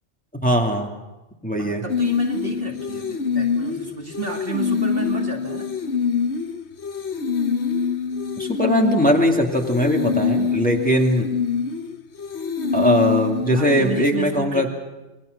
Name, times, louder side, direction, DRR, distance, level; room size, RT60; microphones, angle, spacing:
voice 1, 0.4-0.9 1.4-1.8 8.4-11.3 12.7-14.7, equal, 5° left, 1 dB, 2.2 m, -20 dB
voice 2, 1.6-5.7 13.5-14.7, right 4 dB, 50° right, 1 dB, 2.7 m, -32 dB
sound 1, 1.9-14.0, left 6 dB, 65° left, 1.4 m, -25 dB
27.0 x 22.0 x 6.5 m, 1.1 s
omnidirectional pair, 1.2 m